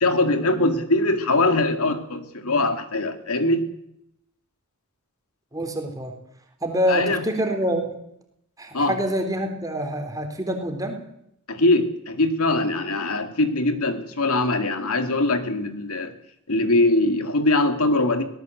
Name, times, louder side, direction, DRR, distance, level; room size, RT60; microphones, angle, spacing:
voice 1, 0.0-3.7 6.9-7.2 8.7-9.0 11.5-16.1 16.5-18.2, left 2 dB, 80° left, 8 dB, 2.2 m, -22 dB
voice 2, 5.5-6.1 6.6-7.9 8.6-11.0, equal, 15° right, 5 dB, 3.6 m, -26 dB
18.0 x 18.0 x 7.9 m, 0.76 s
head